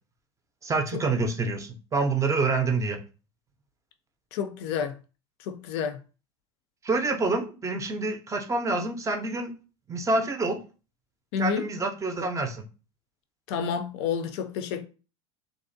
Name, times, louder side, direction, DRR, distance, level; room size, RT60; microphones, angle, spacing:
voice 1, 0.6-3.0 6.8-9.5 9.9-10.6 11.4-12.6, right 3 dB, 20° right, 0.4 m, -27 dB
voice 2, 4.3-4.9 5.4-6.0 11.3-11.7 13.5-14.8, left 7 dB, 65° left, 0.4 m, -29 dB
2.5 x 2.1 x 2.5 m
hypercardioid pair, 85°, 15 cm